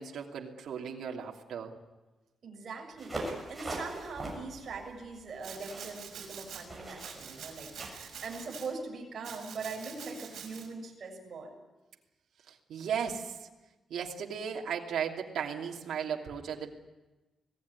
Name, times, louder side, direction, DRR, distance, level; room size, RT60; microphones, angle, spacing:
voice 1, 0.0-1.7 12.5-13.4 13.9-16.7, right 7 dB, 85° right, 0 dB, 2.9 m, -36 dB
voice 2, 2.4-3.2 3.5-11.6, right 4 dB, 40° right, 0 dB, 7.0 m, -41 dB
sound 1, 3.0-8.5, right 2 dB, 10° right, 6.8 m, -42 dB
Domestic sounds home sounds, 5.4-6.6 7.0-8.7 9.2-10.7, right 7 dB, 65° right, 6.0 m, -46 dB
26.0 x 18.0 x 9.8 m, 1.1 s
wide cardioid pair, 180°, 0 cm